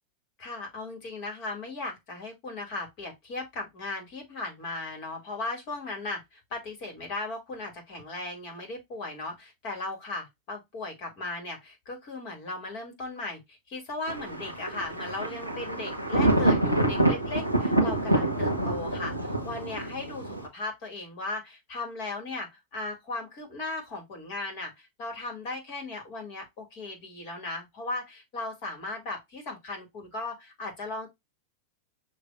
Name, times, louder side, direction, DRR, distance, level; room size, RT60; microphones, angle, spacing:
voice 1, 0.4-31.1, left 2 dB, 45° left, 2.7 m, -37 dB
Thunder, 14.1-20.5, right 1 dB, 90° left, 1.0 m, -26 dB
6.5 x 3.0 x 2.6 m
figure-of-eight pair, 90°, 0 cm